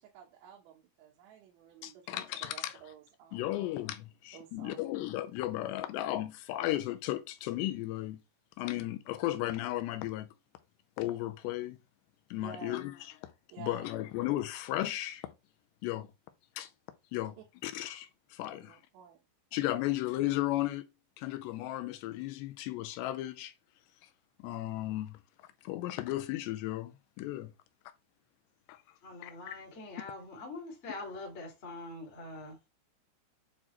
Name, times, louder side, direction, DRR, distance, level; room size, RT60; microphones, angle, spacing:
voice 1, 0.0-3.6 4.3-4.8 12.4-12.9 13.5-13.9 18.5-19.2 19.8-19.9, right 9 dB, 75° right, 3.2 m, -52 dB
voice 2, 1.8-2.7 3.3-8.2 8.6-10.3 11.0-11.8 12.3-12.9 13.6-15.2 15.8-16.1 16.6-16.7 17.1-17.4 17.6-18.8 19.5-20.8 21.2-23.5 24.4-25.2 25.6-27.5 28.7-28.8 29.2-29.3, left 15 dB, 80° left, 2.7 m, -35 dB
voice 3, 29.0-32.7, left 2 dB, 25° left, 1.6 m, -44 dB
8.6 x 4.2 x 3.1 m
omnidirectional pair, 5.3 m